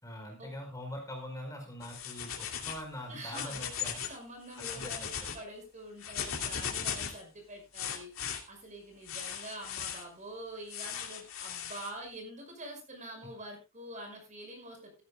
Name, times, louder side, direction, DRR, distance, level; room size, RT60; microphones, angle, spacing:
voice 1, 0.0-4.0 4.7-5.1, left 1 dB, 15° left, 2 dB, 4.7 m, -43 dB
sound 1, 1.8-2.8 3.2-4.2 4.5-5.4 6.0-7.2 7.7-8.4 9.1-10.0 10.7-11.9, left 8 dB, 80° left, 2.7 m, -38 dB
voice 2, 3.1-3.7 4.1-15.0, right 1 dB, 35° right, 3 dB, 5.5 m, -46 dB
16.0 x 14.5 x 2.3 m, 0.26 s
head